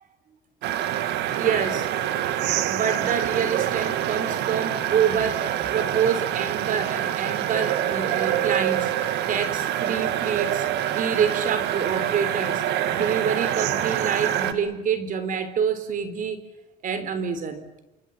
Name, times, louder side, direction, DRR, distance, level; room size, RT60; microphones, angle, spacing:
sound 1, 0.6-14.5, right 11 dB, 80° right, 2.1 m, -26 dB
voice 1, 1.4-1.9 2.7-8.9 9.3-10.7 10.9-12.6 12.9-16.4 16.8-17.7, right 7 dB, 55° right, 3.8 m, -27 dB
27.5 x 25.5 x 7.4 m
cardioid pair, 110°, 17 cm